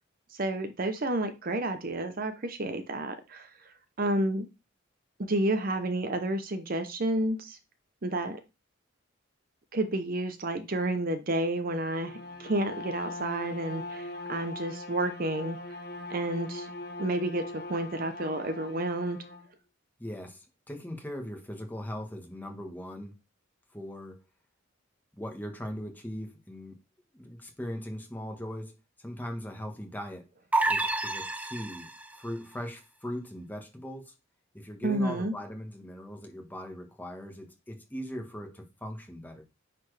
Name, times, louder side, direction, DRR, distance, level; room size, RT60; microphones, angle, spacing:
voice 1, 0.3-4.5 5.2-7.6 8.0-8.4 9.7-15.8 16.1-16.7 17.0-19.2 34.8-35.3, right 1 dB, 45° right, 0.7 m, -30 dB
Bowed string instrument, 11.9-19.5, left 2 dB, 50° left, 1.2 m, -41 dB
voice 2, 20.0-23.1 23.7-24.2 25.2-26.8 27.1-30.3 30.7-31.9 32.1-34.1 34.5-39.4, equal, 10° left, 1.4 m, -39 dB
sound 1, 30.5-32.2, right 2 dB, 5° right, 0.4 m, -29 dB
9.6 x 4.2 x 3.3 m
head